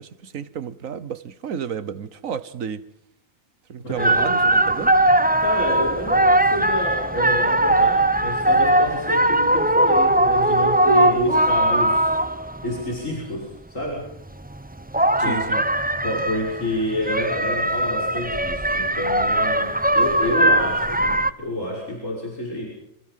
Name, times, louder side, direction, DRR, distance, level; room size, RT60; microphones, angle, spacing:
voice 1, 0.0-2.8 3.7-5.0 15.2-15.6, right 7 dB, 85° right, 1.6 m, -32 dB
voice 2, 3.8-4.1 5.4-12.1 12.6-14.0 15.2-15.4 16.0-22.7, equal, 75° left, 6.3 m, -28 dB
sound 1, 4.0-12.8 14.5-21.3, right 1 dB, 10° right, 0.7 m, -20 dB
27.0 x 26.0 x 5.7 m
omnidirectional pair, 1.4 m